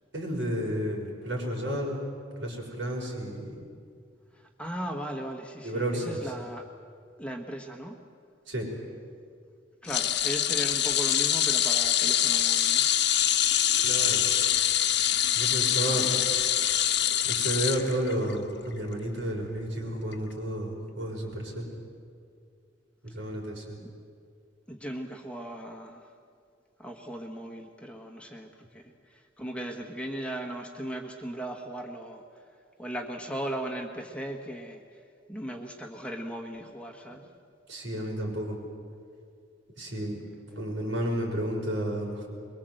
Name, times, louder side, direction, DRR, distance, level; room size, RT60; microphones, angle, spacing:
voice 1, 0.1-2.0 2.4-3.5 5.6-6.3 8.5-8.7 13.8-14.2 15.3-16.1 17.2-21.7 23.0-23.8 37.7-38.6 39.8-40.2 40.6-42.3, right 1 dB, 75° right, -1 dB, 5.8 m, -31 dB
voice 2, 4.3-6.6 7.2-8.0 9.8-12.8 15.9-16.3 24.7-26.1 26.8-32.4 32.8-35.0 35.3-37.2, right 1 dB, 5° left, 2 dB, 1.4 m, -37 dB
sound 1, 9.9-18.4 18.7-18.9 20.1-20.2, left 11 dB, 60° left, 1.2 m, -25 dB
23.5 x 22.5 x 7.9 m, 2.3 s
head